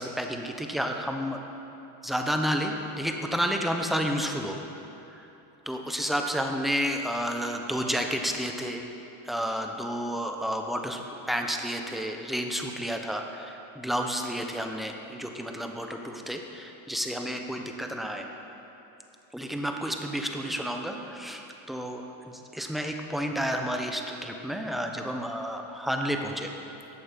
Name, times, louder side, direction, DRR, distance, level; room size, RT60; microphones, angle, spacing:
voice 1, 0.0-1.4 2.0-4.6 5.1-5.3 5.7-8.8 9.2-18.3 19.3-22.0 22.5-26.5, equal, ahead, 3 dB, 0.9 m, -31 dB
14.0 x 8.7 x 5.2 m, 2.9 s
cardioid pair, 125°, 41 cm